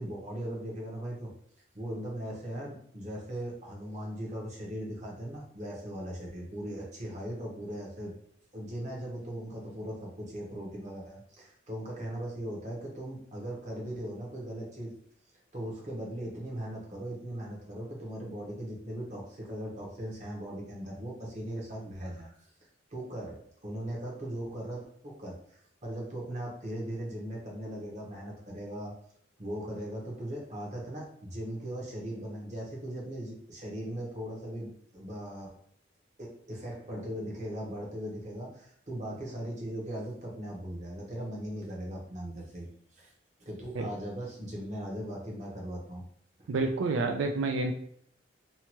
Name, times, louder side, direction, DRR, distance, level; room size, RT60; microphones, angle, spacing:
voice 1, 0.0-1.3 1.7-8.1 8.5-15.0 15.5-22.4 22.9-29.0 29.4-35.6 36.2-43.1 43.4-46.0 46.4-46.5, right 1 dB, 40° right, -2 dB, 0.8 m, -39 dB
voice 2, 46.5-47.7, right 3 dB, 90° right, 4 dB, 0.3 m, -29 dB
2.8 x 2.2 x 2.9 m, 0.65 s
head